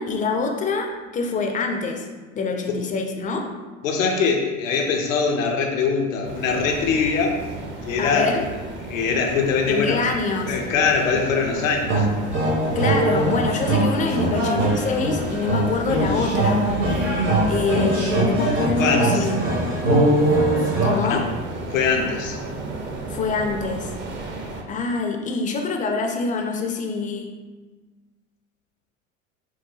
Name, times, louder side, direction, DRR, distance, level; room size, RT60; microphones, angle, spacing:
voice 1, 0.0-2.1 2.3-3.5 8.0-8.4 9.7-10.5 12.7-16.6 17.5-19.4 20.8-21.3 23.1-23.9 24.7-27.3, left 3 dB, 20° left, 3 dB, 0.4 m, -25 dB
voice 2, 3.8-7.4 7.9-8.4 8.9-10.1 10.4-12.1 18.8-19.3 21.0-21.3 21.7-22.4, left 5 dB, 85° left, 2 dB, 0.6 m, -22 dB
sound 1, 6.2-24.6, right 2 dB, 30° right, 0.5 m, -34 dB
sound 2, 11.9-21.0, right 1 dB, 65° right, 1.4 m, -21 dB
4.6 x 2.2 x 2.6 m, 1.3 s
hypercardioid pair, 80°, 39 cm